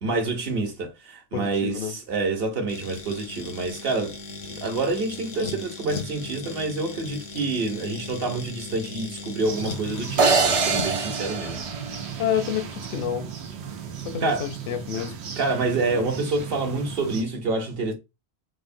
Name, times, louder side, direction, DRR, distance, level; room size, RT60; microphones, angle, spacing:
voice 1, 0.0-4.2 4.5-11.6 14.2-14.5 15.4-17.9, right 3 dB, 65° right, 1.0 m, -27 dB
voice 2, 1.3-1.9 12.2-13.3 14.0-15.1 15.9-16.1, left 9 dB, 65° left, 0.7 m, -29 dB
sound 1, 2.7-10.9, left 4 dB, 80° left, 1.0 m, -37 dB
sound 2, 9.4-17.2, right 7 dB, 85° right, 0.9 m, -36 dB
sound 3, 10.2-12.5, right 4 dB, 50° right, 0.4 m, -24 dB
3.3 x 2.1 x 2.5 m
omnidirectional pair, 1.1 m